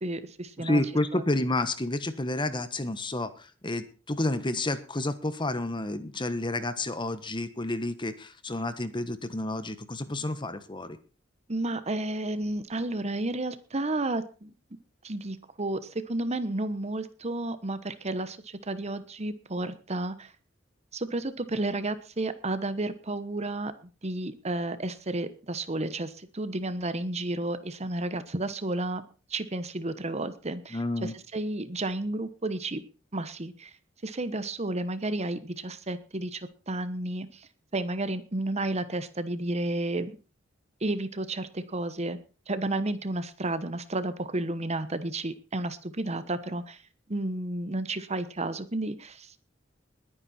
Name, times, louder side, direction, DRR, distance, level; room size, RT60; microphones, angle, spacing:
voice 1, 0.0-0.8 1.1-1.2 11.5-14.5 15.0-20.3 20.9-23.7 24.0-29.0 29.3-32.8 33.1-33.7 34.0-40.2 40.8-42.2 42.5-46.8 47.1-49.4, right 2 dB, 35° right, 13 dB, 1.1 m, -32 dB
voice 2, 0.6-11.0 30.7-31.1, left 2 dB, 25° left, 12 dB, 1.3 m, -30 dB
21.0 x 9.8 x 4.4 m, 0.36 s
head